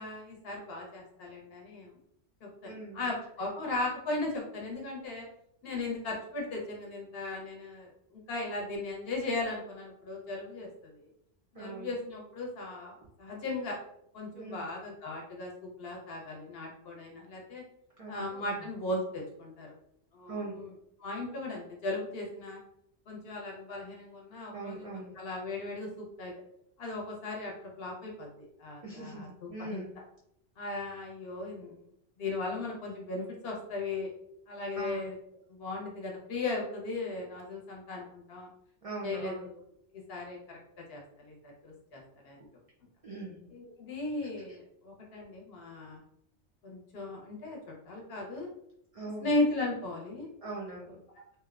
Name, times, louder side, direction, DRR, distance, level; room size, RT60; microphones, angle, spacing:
voice 1, 0.0-1.9 2.4-5.2 5.6-11.1 11.5-13.8 14.1-17.6 18.1-19.7 20.1-20.7 21.0-22.6 23.1-26.3 26.8-28.3 28.6-29.8 30.6-31.8 32.2-34.1 34.5-35.1 35.5-38.5 39.0-39.5 39.9-40.6 40.9-42.4 43.5-46.0 46.6-47.6 47.9-48.5 49.2-50.3, left 2 dB, 65° left, -2 dB, 0.8 m, -37 dB
voice 2, 2.6-3.1 11.5-11.9 14.3-14.7 18.0-18.7 20.3-20.7 24.5-25.2 28.8-29.9 34.7-35.1 38.8-39.5 43.0-43.5 48.9-49.3 50.4-51.0, right 3 dB, 60° right, -4 dB, 0.3 m, -41 dB
2.8 x 2.0 x 2.3 m, 0.75 s
omnidirectional pair, 1.2 m